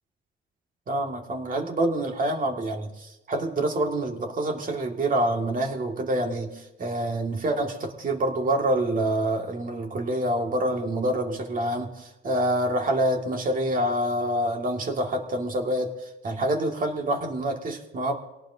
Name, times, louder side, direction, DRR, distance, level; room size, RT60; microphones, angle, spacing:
voice 1, 0.9-18.2, right 1 dB, 45° right, 2 dB, 2.2 m, -27 dB
23.5 x 18.0 x 2.8 m, 1.0 s
cardioid pair, 90°, 20 cm